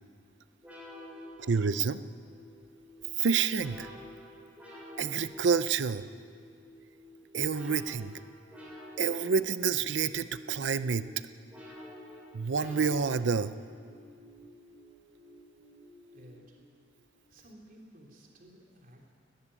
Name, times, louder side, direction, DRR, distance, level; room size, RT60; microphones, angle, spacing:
sound 1, 0.6-16.8, left 1 dB, 10° right, 6.2 m, -50 dB
voice 1, 1.4-2.0 3.2-3.9 5.0-6.1 7.3-8.1 9.0-11.1 12.3-13.5, right 5 dB, 70° right, 14 dB, 0.6 m, -28 dB
voice 2, 16.1-16.6 17.3-19.1, equal, 50° right, 0 dB, 3.3 m, -54 dB
19.0 x 14.5 x 10.0 m, 2.1 s
head